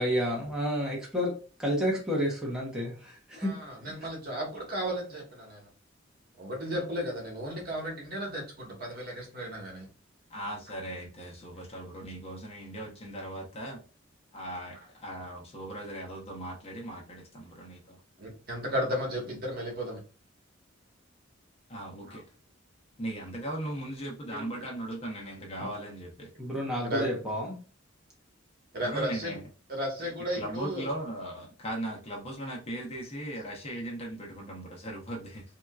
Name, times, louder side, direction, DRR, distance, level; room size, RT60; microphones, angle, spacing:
voice 1, 0.0-1.3 1.6-3.5 25.6-25.7 26.4-27.6, equal, 5° right, -3 dB, 0.9 m, -30 dB
voice 2, 3.3-5.6 6.4-9.9 18.2-20.0 22.0-22.2 26.8-27.1 28.7-29.4 29.7-30.9, equal, 50° right, -1 dB, 1.4 m, -34 dB
voice 3, 10.3-13.8 14.3-18.0 21.7-22.2 23.0-26.3 28.8-29.4 30.0-35.4, right 1 dB, 30° left, -1 dB, 0.9 m, -38 dB
3.5 x 2.8 x 2.4 m, 0.36 s
head